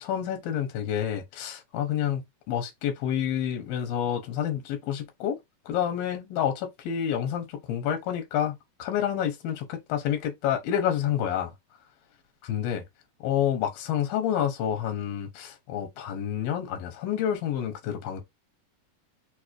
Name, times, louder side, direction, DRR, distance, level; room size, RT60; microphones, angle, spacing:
voice 1, 0.0-2.2 2.5-5.4 5.7-11.5 12.5-12.8 13.2-18.2, left 9 dB, 85° left, 2.8 m, -28 dB
6.0 x 2.2 x 3.1 m
omnidirectional pair, 4.2 m